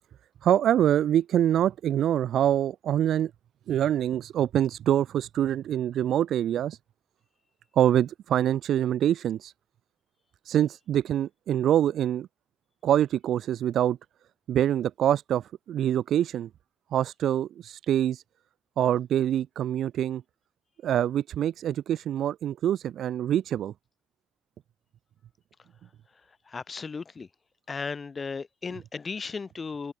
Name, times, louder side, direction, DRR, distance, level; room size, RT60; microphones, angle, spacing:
voice 1, 0.4-3.3 3.7-6.8 7.7-9.5 10.4-12.3 12.8-14.0 14.5-16.5 16.9-18.2 18.8-20.2 20.8-23.7, right 11 dB, 70° right, 1.0 m, -25 dB
voice 2, 26.5-27.3 27.7-29.9, left 4 dB, 35° left, 2.5 m, -35 dB
open air
cardioid pair, 90°, 0 cm